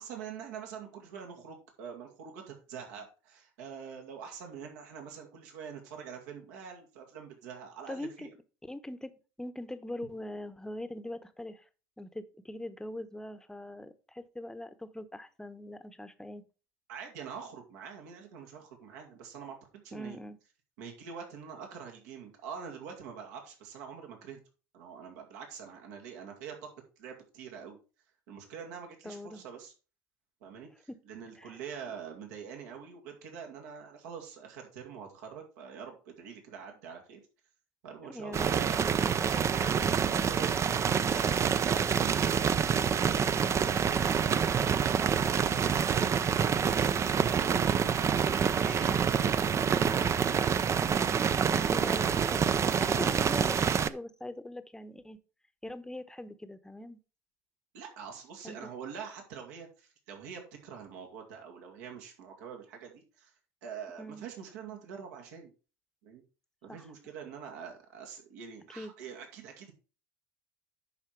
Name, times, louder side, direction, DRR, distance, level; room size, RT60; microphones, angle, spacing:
voice 1, 0.0-8.3 16.9-20.2 20.8-24.4 24.7-26.7 27.0-27.8 28.3-29.7 30.4-37.2 37.8-38.8 39.2-44.4 45.0-46.8 47.2-50.4 57.7-63.3 63.6-65.5 66.0-66.2 66.6-69.7, right 7 dB, 75° right, 2 dB, 2.2 m, -45 dB
voice 2, 7.9-8.3 8.6-9.1 9.4-11.6 12.0-16.4 19.9-20.4 29.0-29.4 30.9-31.0 31.4-31.6 38.1-39.2 51.5-55.2 55.6-57.0 58.4-58.7 64.0-64.2 66.7-66.8 68.8-68.9, left 1 dB, 5° left, 12 dB, 0.9 m, -42 dB
sound 1, 38.3-53.9, right 7 dB, 30° right, 0.5 m, -27 dB
10.5 x 4.5 x 4.6 m, 0.34 s
hypercardioid pair, 80°, 9 cm